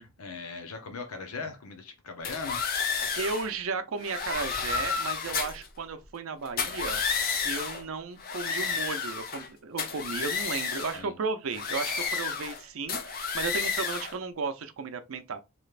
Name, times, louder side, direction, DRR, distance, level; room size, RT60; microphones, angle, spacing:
voice 1, 0.0-2.6 10.9-11.1, left 4 dB, 90° left, 0.8 m, -39 dB
sound 1, 2.2-3.5 4.0-5.7 6.5-7.8 8.2-9.5 9.8-11.0 11.5-12.6 12.9-14.1, left 5 dB, 45° left, 0.6 m, -31 dB
voice 2, 3.2-7.0 7.4-15.4, right 4 dB, 70° right, 0.5 m, -34 dB
3.2 x 3.0 x 2.4 m
head